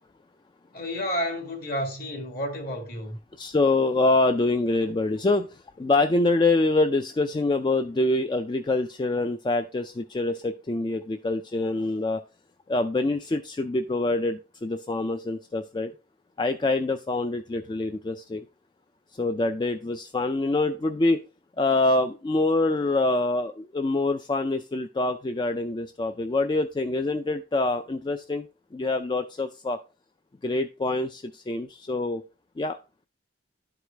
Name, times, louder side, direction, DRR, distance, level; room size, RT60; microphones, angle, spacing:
voice 1, 0.7-3.2, equal, 55° left, 2.0 m, -31 dB
voice 2, 3.4-12.2 12.7-15.9 16.4-18.4 19.1-21.2 21.6-28.4 28.7-29.8 30.4-32.2 32.6-32.8, left 2 dB, 25° left, 0.3 m, -25 dB
11.0 x 4.8 x 3.4 m
head